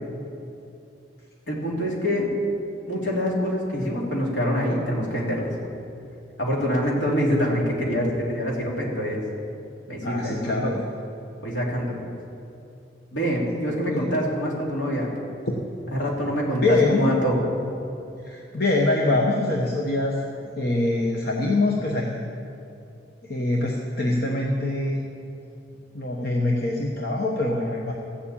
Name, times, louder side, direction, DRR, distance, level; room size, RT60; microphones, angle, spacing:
voice 1, 1.5-2.3 2.9-5.5 6.4-9.2 9.9-10.6 11.4-12.0 13.1-15.1 16.0-17.4, equal, 70° left, -3 dB, 2.9 m, -25 dB
voice 2, 10.0-10.8 13.9-14.1 15.5-15.6 16.6-17.1 18.2-20.2 20.6-22.2 23.2-25.0 25.9-27.9, left 2 dB, 55° left, -1 dB, 1.1 m, -24 dB
14.5 x 7.1 x 8.6 m, 2.7 s
head